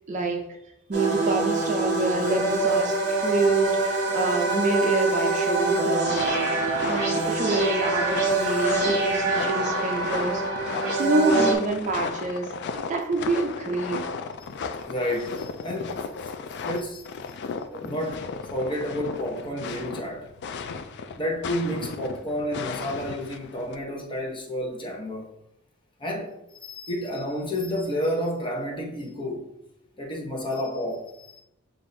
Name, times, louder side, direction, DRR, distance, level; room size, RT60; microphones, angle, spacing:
voice 1, 0.1-0.5 0.9-6.4 6.8-10.4 11.0-14.1, right 2 dB, 35° right, 0.5 m, -27 dB
sound 1, 0.9-11.5, right 3 dB, 55° right, 1.2 m, -25 dB
sound 2, 6.1-23.8, left 5 dB, 55° left, 0.4 m, -35 dB
voice 2, 14.9-16.1 16.6-17.1 17.7-20.3 21.1-25.3 26.0-29.5 30.0-31.4, equal, 25° left, 0.9 m, -30 dB
7.5 x 2.6 x 2.7 m
head